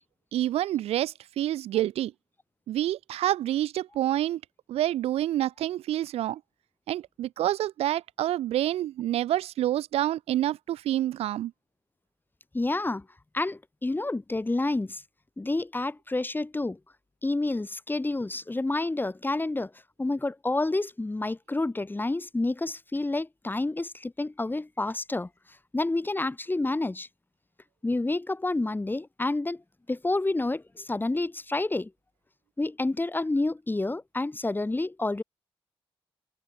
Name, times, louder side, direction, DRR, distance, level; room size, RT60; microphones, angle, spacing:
voice 1, 0.3-2.1 2.7-4.4 4.7-6.4 6.9-11.5, right 13 dB, 85° right, 1.4 m, -28 dB
voice 2, 12.5-13.1 13.3-15.0 15.4-16.8 17.2-19.7 20.0-25.3 25.7-27.1 27.8-29.6 29.9-31.9 32.6-35.2, left 2 dB, 20° left, 1.5 m, -29 dB
open air
cardioid pair, 65°, 10 cm